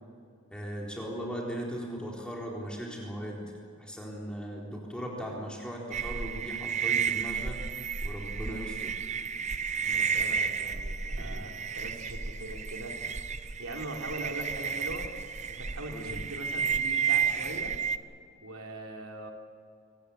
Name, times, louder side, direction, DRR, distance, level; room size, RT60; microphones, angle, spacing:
voice 1, 0.5-3.5 3.8-7.6 8.0-9.0 11.2-11.4 15.9-16.2, equal, 5° left, -3 dB, 4.0 m, -38 dB
sound 1, 5.9-18.0, right 6 dB, 35° right, 0.8 m, -32 dB
voice 2, 9.8-13.0 13.6-15.1 15.5-17.7 18.4-19.3, right 2 dB, 90° right, 1 dB, 3.8 m, -41 dB
24.5 x 19.5 x 8.4 m, 2.3 s
head